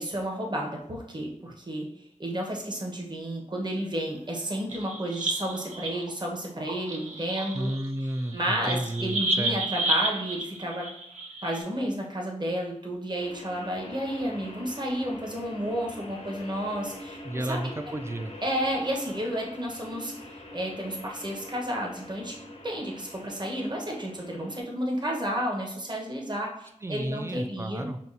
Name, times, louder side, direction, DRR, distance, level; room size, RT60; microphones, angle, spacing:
voice 1, 0.0-1.9 2.2-7.7 8.3-10.9 11.4-17.6 18.4-22.3 22.6-27.9, equal, 35° right, -1 dB, 1.0 m, -31 dB
sound 1, 4.5-6.1 6.6-11.6, right 2 dB, 85° right, 0.6 m, -31 dB
voice 2, 7.5-9.6 17.2-18.3 26.8-28.1, right 1 dB, 20° right, 8 dB, 0.4 m, -32 dB
sound 2, 13.2-24.6, left 1 dB, 65° left, 0.7 m, -44 dB
5.7 x 2.3 x 2.6 m, 0.74 s
wide cardioid pair, 55°, 12 cm